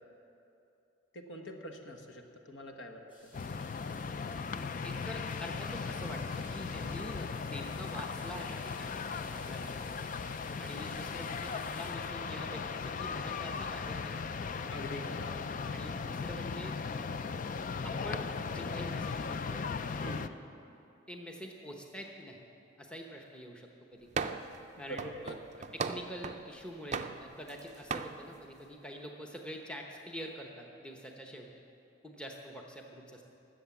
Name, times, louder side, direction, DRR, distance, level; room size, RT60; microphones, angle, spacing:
voice 1, 1.1-3.3 14.7-15.3 20.0-20.3 24.9-25.3, equal, 65° left, 3 dB, 1.3 m, -44 dB
sound 1, 3.1-11.9, left 1 dB, 25° left, 4.4 m, -56 dB
sound 2, 3.3-20.3, left 5 dB, 40° left, 0.4 m, -37 dB
voice 2, 4.5-9.0 9.3-9.8 10.6-14.3 15.7-16.7 17.2-17.3 17.8-20.3 21.1-22.4 22.8-24.2 24.8-25.1 25.6-31.5 32.0-33.2, equal, 5° left, 0 dB, 0.9 m, -46 dB
sound 3, 24.2-24.6 25.0-26.5 26.9-27.6 27.9-28.2, right 5 dB, 35° right, 0.4 m, -37 dB
19.5 x 7.7 x 7.1 m, 2.8 s
head